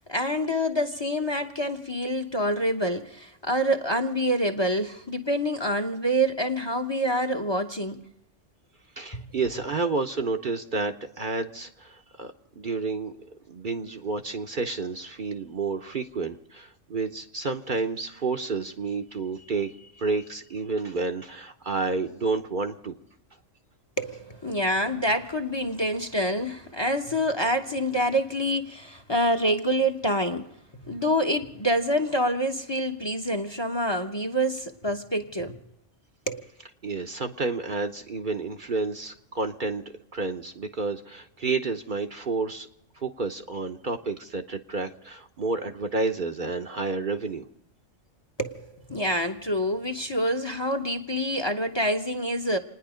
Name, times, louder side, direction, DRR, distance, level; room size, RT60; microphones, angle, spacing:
voice 1, 0.0-8.0 9.1-9.3 24.0-30.4 30.8-35.6 36.3-36.4 48.4-52.6, equal, 25° left, 1.0 m, -26 dB
voice 2, 9.0-22.9 36.8-39.8 40.1-42.7 43.0-47.5, right 3 dB, 45° right, 1.0 m, -30 dB
28.5 x 10.0 x 5.0 m
omnidirectional pair, 1.2 m